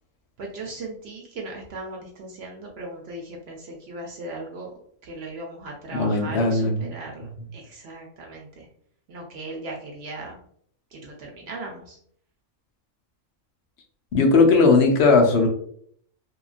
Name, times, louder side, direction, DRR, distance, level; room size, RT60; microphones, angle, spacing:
voice 1, 0.4-4.7 5.0-8.7 9.1-10.4 10.9-12.0, right 2 dB, 65° right, 0 dB, 0.7 m, -37 dB
voice 2, 5.9-6.9 14.1-15.5, left 3 dB, 65° left, 2 dB, 0.7 m, -18 dB
3.0 x 2.3 x 2.4 m, 0.64 s
omnidirectional pair, 1.4 m